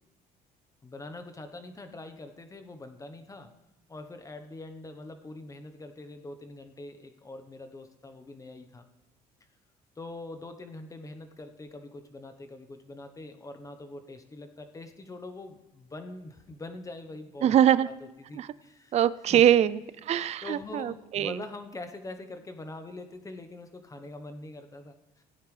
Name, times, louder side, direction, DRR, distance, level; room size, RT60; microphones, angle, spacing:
voice 1, 0.8-3.5 3.9-8.8 10.0-17.5 17.9-18.0 18.3-19.0 19.3-19.4 20.4-25.2, left 2 dB, 20° left, 7 dB, 1.0 m, -43 dB
voice 2, 17.4-17.9 18.3-18.5 18.9-21.4, right 10 dB, 40° right, 17 dB, 0.4 m, -23 dB
17.0 x 9.4 x 3.3 m, 0.96 s
cardioid pair, 110°, 17 cm